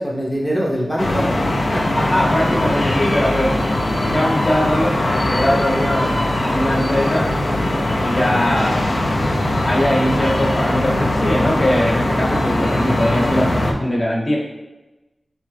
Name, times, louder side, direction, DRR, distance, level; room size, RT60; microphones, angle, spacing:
voice 1, 0.0-2.0 8.1-8.4, equal, ahead, -4 dB, 0.6 m, -24 dB
sound 1, 1.0-13.7, left 1 dB, 60° left, 0.5 m, -20 dB
voice 2, 1.9-3.6 4.1-7.3 8.0-8.9 9.6-14.4, left 1 dB, 40° left, -3 dB, 0.9 m, -21 dB
3.7 x 3.1 x 3.3 m, 1.1 s
wide cardioid pair, 80°, 0 cm